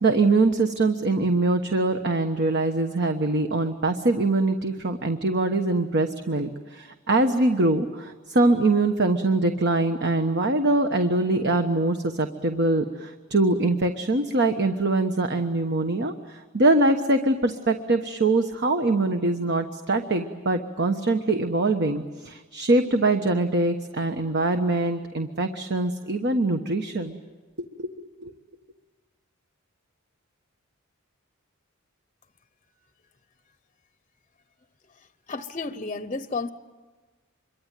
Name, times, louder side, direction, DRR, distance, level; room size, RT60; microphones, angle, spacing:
voice 1, 0.0-27.2 27.8-27.9 28.2-28.3, right 2 dB, 55° right, 6 dB, 1.2 m, -23 dB
voice 2, 35.3-36.5, left 3 dB, 30° left, 11 dB, 0.8 m, -31 dB
26.5 x 23.5 x 9.1 m, 1.3 s
head